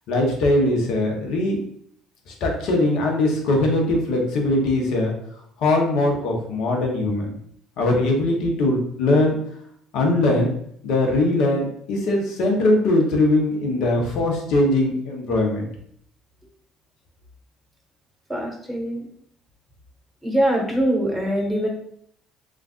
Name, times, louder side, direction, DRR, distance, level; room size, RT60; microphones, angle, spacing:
voice 1, 0.1-1.6 2.3-5.1 5.6-7.3 7.8-9.4 9.9-10.5 10.8-15.7, left 2 dB, 65° left, 1 dB, 0.8 m, -21 dB
voice 2, 18.3-19.1 20.2-21.7, right 1 dB, 5° right, -1 dB, 1.4 m, -23 dB
3.4 x 2.4 x 2.4 m, 0.66 s
hypercardioid pair, 60°, 0 cm